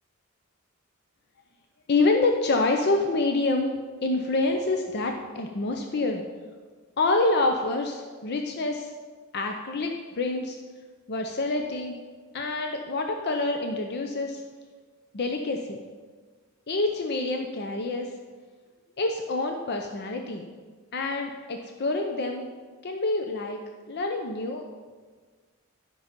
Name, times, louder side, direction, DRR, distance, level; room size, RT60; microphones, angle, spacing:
voice 1, 1.9-3.7 4.0-6.2 7.0-8.9 9.3-10.6 11.1-12.0 12.3-14.4 15.1-15.8 16.7-18.1 19.0-20.5 20.9-22.5 22.8-23.6 23.9-24.6, left 2 dB, 50° left, 3 dB, 0.6 m, -27 dB
11.5 x 5.5 x 5.2 m, 1.5 s
head